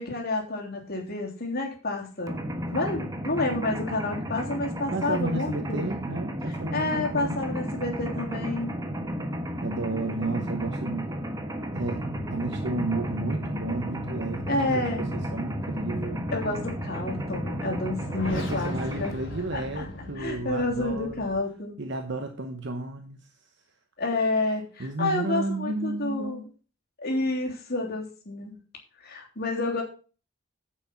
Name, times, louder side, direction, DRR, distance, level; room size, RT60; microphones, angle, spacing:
voice 1, 0.0-2.4 2.7-5.9 6.5-8.7 14.5-15.0 16.3-19.1 19.5-19.9 20.2-21.8 24.0-26.5 27.0-28.5 29.0-29.8, left 2 dB, 50° left, 0 dB, 3.3 m, -29 dB
Mechanisms, 2.3-19.1, equal, 15° right, 1.2 m, -33 dB
voice 2, 4.9-7.4 9.6-11.1 11.7-16.2 18.3-21.3 21.8-23.2 24.8-26.5, right 2 dB, 60° right, 6 dB, 1.0 m, -32 dB
sound 1, 11.7-21.4, equal, 70° left, 3.2 m, -38 dB
9.6 x 6.3 x 5.8 m, 0.37 s
head